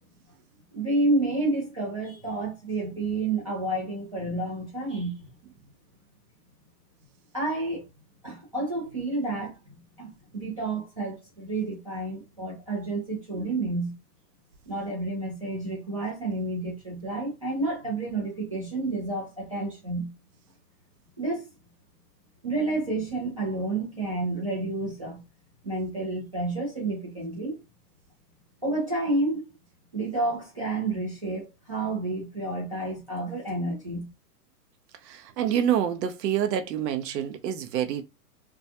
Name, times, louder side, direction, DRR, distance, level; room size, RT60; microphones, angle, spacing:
voice 1, 0.7-5.3 7.3-7.9 8.2-9.6 10.0-13.9 14.7-20.1 21.2-21.5 22.4-25.2 25.6-27.6 28.6-29.4 29.9-34.1, right 2 dB, 25° right, 0.3 m, -30 dB
voice 2, 35.0-38.0, right 9 dB, 85° right, 0.6 m, -27 dB
2.3 x 2.2 x 2.7 m
hypercardioid pair, 155°, 48 cm